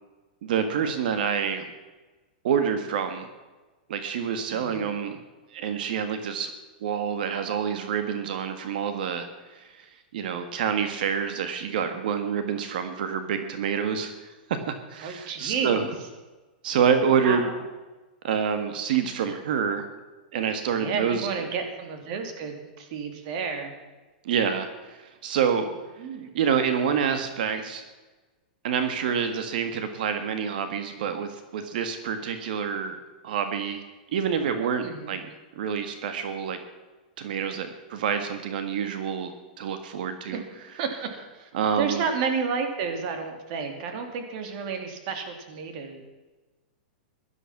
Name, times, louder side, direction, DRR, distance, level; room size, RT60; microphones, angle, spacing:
voice 1, 0.4-1.7 2.4-3.3 3.9-5.2 5.5-6.5 6.8-9.9 10.1-15.8 16.6-17.5 18.2-19.8 20.3-21.3 24.2-25.7 26.3-27.8 28.6-33.8 34.1-35.3 35.5-36.6 37.2-40.4 41.5-42.0, right 7 dB, 65° right, 8 dB, 1.6 m, -27 dB
voice 2, 4.5-4.9 15.0-15.9 17.2-17.5 20.7-23.7 26.0-26.3 34.8-35.2 40.3-40.4 40.8-41.5 41.8-46.0, right 5 dB, 50° right, 5 dB, 2.8 m, -31 dB
16.5 x 12.0 x 5.9 m, 1.2 s
supercardioid pair, 150°, 5 cm